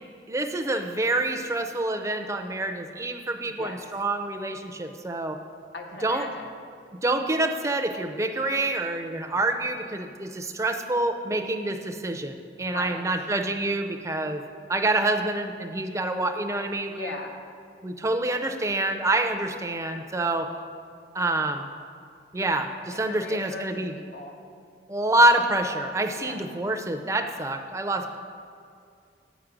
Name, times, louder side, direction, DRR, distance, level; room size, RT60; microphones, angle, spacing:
voice 1, 0.3-5.4 6.0-6.3 7.0-14.4 14.7-17.1 17.8-20.5 21.1-21.7 22.3-23.9 24.9-28.2, right 2 dB, 15° right, 5 dB, 0.5 m, -27 dB
voice 2, 3.4-3.8 5.7-6.5 9.1-9.4 12.6-13.1 16.9-17.4 22.9-24.4 26.2-26.4, left 2 dB, 75° left, 3 dB, 0.9 m, -39 dB
8.0 x 5.1 x 6.0 m, 2.4 s
head